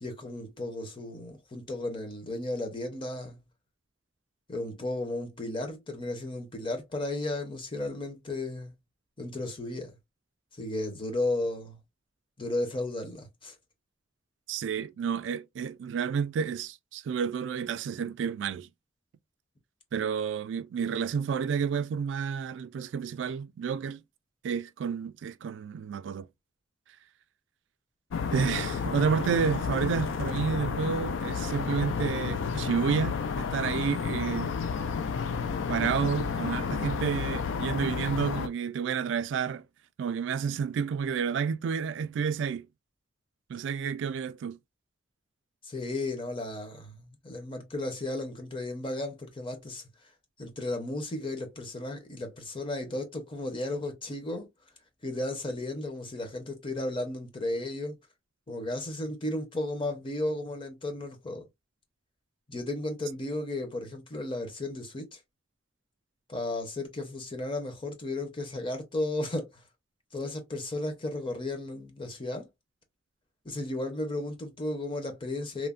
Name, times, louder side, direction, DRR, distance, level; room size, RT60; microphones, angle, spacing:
voice 1, 0.0-3.4 4.5-8.7 9.2-9.9 10.6-11.8 12.4-13.5 45.6-49.8 50.4-54.5 55.0-58.0 58.5-61.5 62.5-65.2 66.3-69.6 70.1-72.5 73.4-75.7, left 2 dB, 25° left, 0.7 m, -34 dB
voice 2, 14.5-18.7 19.9-24.0 24.4-26.3 28.3-34.5 35.7-39.6 40.0-42.7 43.5-44.6, right 6 dB, 65° right, 0.3 m, -30 dB
sound 1, 28.1-38.5, left 5 dB, 75° left, 0.4 m, -31 dB
3.1 x 2.1 x 2.4 m
head